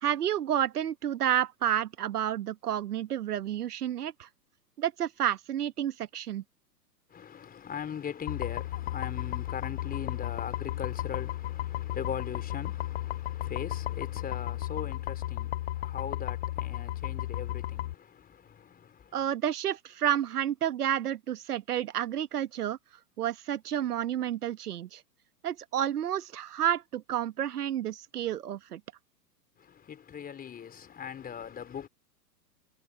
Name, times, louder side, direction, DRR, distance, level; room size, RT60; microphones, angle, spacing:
voice 1, 0.0-4.3 4.8-6.4 19.1-22.8 23.2-25.0 25.4-28.8, right 10 dB, 65° right, 1.3 m, -30 dB
voice 2, 7.1-19.2 29.6-31.9, left 8 dB, 20° left, 4.7 m, -40 dB
sound 1, 8.3-17.9, left 15 dB, 45° left, 0.5 m, -34 dB
figure-of-eight pair, 110°, 49 cm